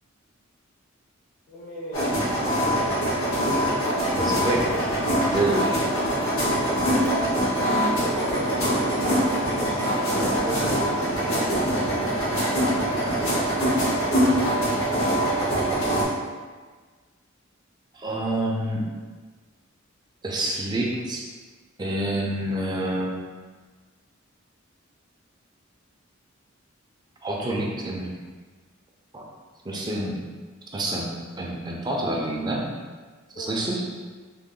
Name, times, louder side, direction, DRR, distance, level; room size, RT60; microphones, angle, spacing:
voice 1, 1.5-2.2 7.9-15.7 33.3-33.7, equal, 40° left, -8 dB, 0.7 m, -38 dB
sound 1, 1.9-16.0, equal, 85° left, 1.1 m, -23 dB
voice 2, 4.1-4.7 5.3-5.7 17.9-18.8 20.2-21.2 21.8-23.3 27.2-28.1 29.1-29.2 29.6-30.2 30.7-31.1 31.4-32.7 33.4-33.8, right 1 dB, 20° right, -2 dB, 0.5 m, -27 dB
3.6 x 2.1 x 3.7 m, 1.4 s
head